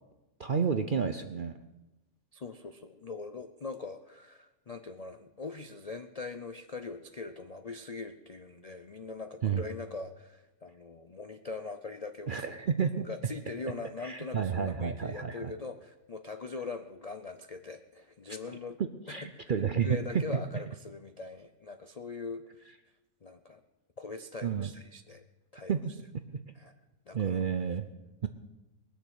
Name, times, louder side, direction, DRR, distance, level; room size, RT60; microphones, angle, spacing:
voice 1, 0.4-1.6 9.4-9.6 12.3-13.1 14.0-15.5 19.1-20.4 24.4-24.7 25.7-25.8 27.1-27.9 28.2-28.3, right 7 dB, 55° right, 8 dB, 0.6 m, -30 dB
voice 2, 2.3-12.5 13.0-18.8 19.1-19.5 19.8-22.7 23.2-23.6 24.0-25.2 25.5-25.7 26.5-26.7 27.1-27.4, left 4 dB, 55° left, 8 dB, 0.4 m, -42 dB
20.5 x 6.8 x 8.2 m, 1.1 s
omnidirectional pair, 1.6 m